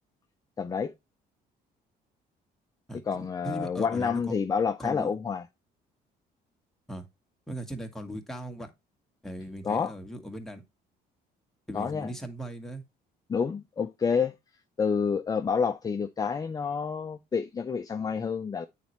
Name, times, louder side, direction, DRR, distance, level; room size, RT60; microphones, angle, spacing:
voice 1, 0.6-0.9 3.1-5.4 9.6-9.9 11.7-12.1 13.3-14.3 14.8-18.7, left 6 dB, 20° left, 0.5 m, -28 dB
voice 2, 2.9-4.3 4.8-5.1 6.9-7.0 7.5-8.7 9.2-10.6 11.7-12.8, right 1 dB, ahead, 1.4 m, -38 dB
8.8 x 4.2 x 3.1 m
cardioid pair, 110°, 17 cm